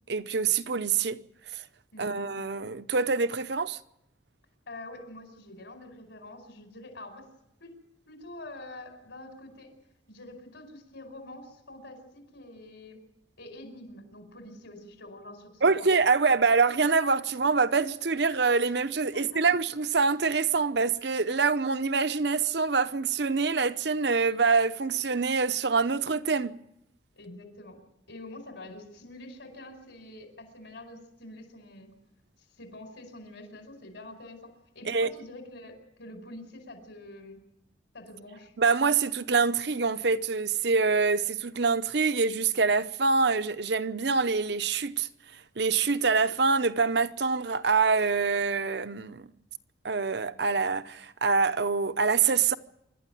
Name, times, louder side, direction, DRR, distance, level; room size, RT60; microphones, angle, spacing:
voice 1, 0.1-1.2 1.5-1.6 2.0-3.8 15.6-26.6 34.9-35.1 38.6-45.1 45.6-49.3 49.8-52.5, right 4 dB, 60° right, 0.8 m, -25 dB
voice 2, 1.9-2.2 4.7-7.3 7.6-7.8 8.1-9.7 10.1-13.0 13.4-15.9 19.1-19.5 27.1-27.8 28.1-31.9 32.6-37.4 37.9-38.5, left 1 dB, 70° left, 5.0 m, -46 dB
26.0 x 12.5 x 9.2 m
head